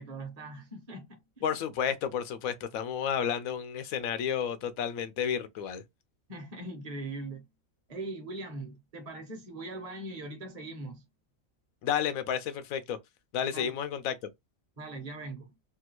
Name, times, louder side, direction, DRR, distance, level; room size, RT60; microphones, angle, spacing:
voice 1, 0.0-1.4 6.3-7.4 7.9-11.0 13.5-13.8 14.8-15.5, right 2 dB, 30° right, 0.9 m, -41 dB
voice 2, 1.4-5.8 11.8-13.0 13.3-14.1, left 8 dB, 90° left, 1.0 m, -31 dB
3.4 x 2.3 x 2.9 m
omnidirectional pair, 1.4 m